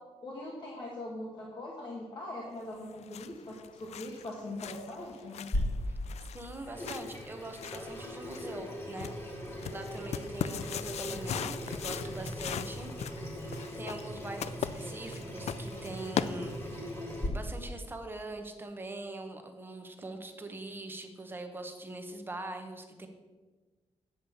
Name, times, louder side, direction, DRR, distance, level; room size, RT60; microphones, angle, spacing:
voice 1, 0.2-5.5, left 1 dB, 40° left, -3 dB, 1.3 m, -41 dB
sound 1, 2.7-16.9, left 9 dB, 75° left, 0.4 m, -40 dB
Water tap faucet / Sink (filling or washing), 5.5-17.3, equal, 25° left, 1.9 m, -39 dB
voice 2, 6.3-12.9 13.8-16.9 17.3-23.1, right 2 dB, 20° right, 5 dB, 0.9 m, -43 dB
8.7 x 5.2 x 7.0 m, 1.3 s
wide cardioid pair, 175°, 11 cm